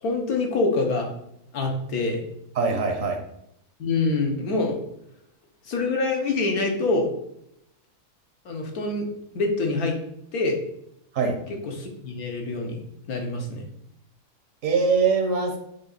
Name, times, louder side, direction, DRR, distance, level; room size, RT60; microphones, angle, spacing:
voice 1, 0.0-1.1 1.5-2.2 3.8-4.8 5.7-7.1 8.4-9.1 9.3-9.9 10.3-10.6 11.6-12.8 13.1-13.6, left 3 dB, 70° left, 2 dB, 1.6 m, -25 dB
voice 2, 2.5-3.2 11.1-11.4 14.6-15.6, right 4 dB, 60° right, 3 dB, 1.4 m, -22 dB
7.6 x 3.4 x 4.1 m, 0.76 s
omnidirectional pair, 1.6 m